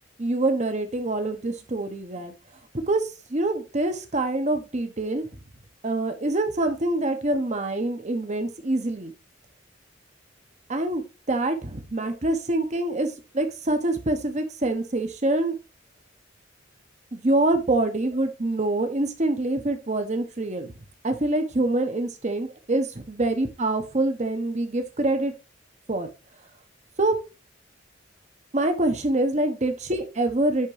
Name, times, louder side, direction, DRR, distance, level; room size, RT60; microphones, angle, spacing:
voice 1, 0.2-2.3 2.9-5.3 5.8-9.1 10.7-11.0 11.3-13.1 13.3-15.6 17.1-20.7 21.0-25.3 25.9-26.1 27.0-27.2 28.5-30.7, right 2 dB, 40° right, 7 dB, 1.1 m, -25 dB
10.5 x 3.7 x 3.3 m, 0.30 s
head